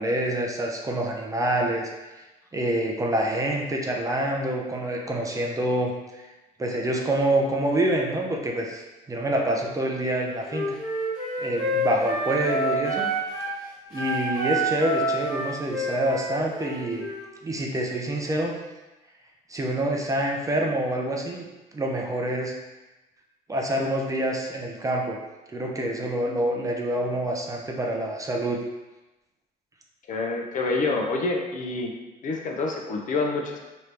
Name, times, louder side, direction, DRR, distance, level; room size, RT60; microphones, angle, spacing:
voice 1, 0.0-1.9 2.5-6.3 6.6-8.8 9.1-10.8 11.4-13.1 13.9-17.1 17.4-18.5 19.5-21.5 21.7-22.6 23.5-25.2 25.5-28.6, right 1 dB, 20° right, 0 dB, 0.4 m, -26 dB
Wind instrument woodwind instrument, 10.4-13.5 13.9-17.3, right 1 dB, 25° left, 1.3 m, -28 dB
voice 2, 30.1-31.9 32.2-33.6, left 3 dB, 50° left, 2 dB, 0.5 m, -27 dB
3.0 x 2.6 x 3.2 m, 1.1 s
cardioid pair, 110°, 17 cm